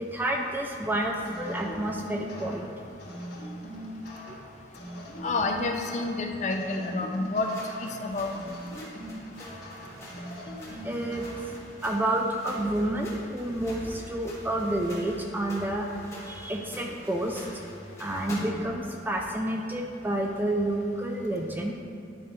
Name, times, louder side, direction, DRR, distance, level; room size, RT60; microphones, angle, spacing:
voice 1, 0.0-2.7 10.8-11.5 11.8-15.9 16.2-17.4 18.0-21.7, right 1 dB, 10° right, 1 dB, 0.4 m, -29 dB
sound 1, 1.2-11.9, equal, 55° left, 1.4 m, -41 dB
voice 2, 5.2-7.5 7.8-8.3, left 3 dB, 40° left, 2 dB, 0.6 m, -29 dB
sound 2, 7.4-18.7, left 1 dB, 15° left, 1.4 m, -46 dB
9.9 x 4.2 x 3.7 m, 2.6 s
head